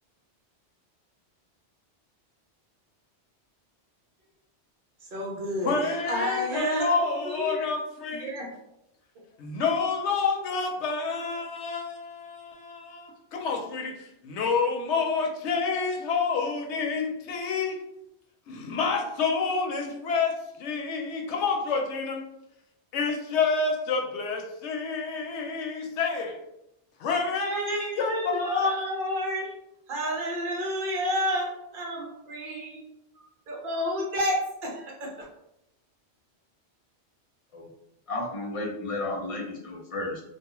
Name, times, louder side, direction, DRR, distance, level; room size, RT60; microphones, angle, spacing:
voice 1, 5.1-5.7 6.1-7.0 7.2-7.6 8.2-8.5 27.4-29.5 29.9-32.7 33.5-35.1, equal, 55° right, -1 dB, 0.8 m, -30 dB
voice 2, 5.6-8.3 9.4-17.8 18.5-22.2 22.9-26.4 27.0-28.9, left 4 dB, 75° left, 2 dB, 0.9 m, -28 dB
voice 3, 38.1-40.2, left 2 dB, 60° left, 0 dB, 0.3 m, -32 dB
2.3 x 2.3 x 2.9 m, 0.83 s
omnidirectional pair, 1.2 m